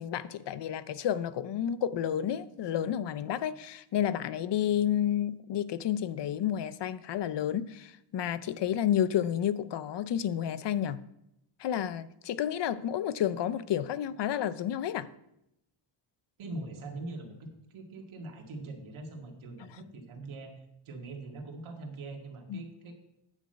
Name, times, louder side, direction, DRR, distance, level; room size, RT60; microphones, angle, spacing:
voice 1, 0.0-11.0 11.6-15.1 22.5-22.6, left 10 dB, 60° left, 15 dB, 0.6 m, -30 dB
voice 2, 16.4-22.9, right 2 dB, 75° right, 2 dB, 2.3 m, -42 dB
9.9 x 6.2 x 7.8 m, 0.82 s
wide cardioid pair, 175°, 49 cm